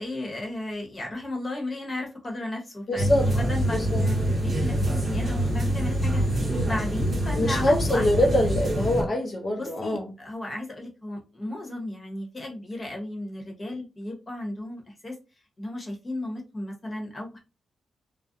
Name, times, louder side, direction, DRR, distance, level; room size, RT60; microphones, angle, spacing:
voice 1, 0.0-6.2 6.6-8.3 9.6-15.2 15.6-17.4, left 1 dB, 30° left, 1.0 m, -35 dB
voice 2, 2.9-3.3 3.7-4.0 7.3-10.1, left 1 dB, 45° left, 0.5 m, -24 dB
sound 1, 3.0-9.0, right 1 dB, 40° right, 0.8 m, -25 dB
2.4 x 2.0 x 2.6 m
cardioid pair, 85°, 0 cm